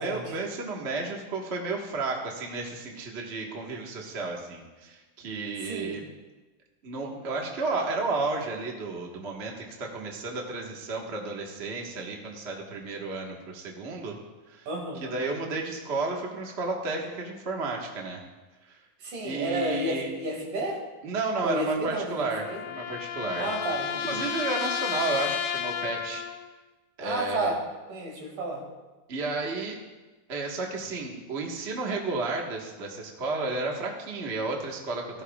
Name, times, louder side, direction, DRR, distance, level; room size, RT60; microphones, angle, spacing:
voice 1, 0.0-6.0 6.8-14.2 14.5-14.7 15.0-18.2 18.7-18.8 19.2-20.1 21.0-23.5 24.0-26.3 27.0-27.5 29.1-29.8 30.3-35.2, right 3 dB, 55° right, 0 dB, 0.7 m, -32 dB
voice 2, 5.6-6.0 14.7-15.1 19.0-20.8 21.4-22.6 23.4-24.2 27.0-27.6 27.9-28.6, right 1 dB, 70° right, -1 dB, 3.8 m, -31 dB
sound 1, 21.7-26.5, left 8 dB, 90° left, 2.5 m, -32 dB
17.0 x 14.0 x 2.4 m, 1.2 s
omnidirectional pair, 3.8 m